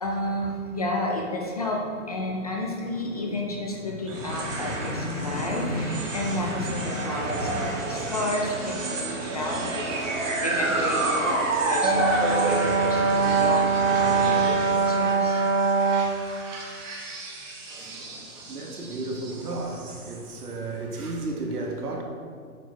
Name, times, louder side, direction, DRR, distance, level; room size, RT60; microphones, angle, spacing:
voice 1, 0.0-9.9 10.4-14.6 14.9-15.4, left 1 dB, 25° left, 0.5 m, -31 dB
sound 1, 4.1-20.5, right 2 dB, 55° right, 1.8 m, -30 dB
Brass instrument, 11.8-16.2, right 4 dB, 40° right, 0.7 m, -23 dB
voice 2, 17.7-22.0, right 2 dB, 85° right, 1.5 m, -34 dB
8.1 x 4.6 x 4.5 m
hypercardioid pair, 160°, 44 cm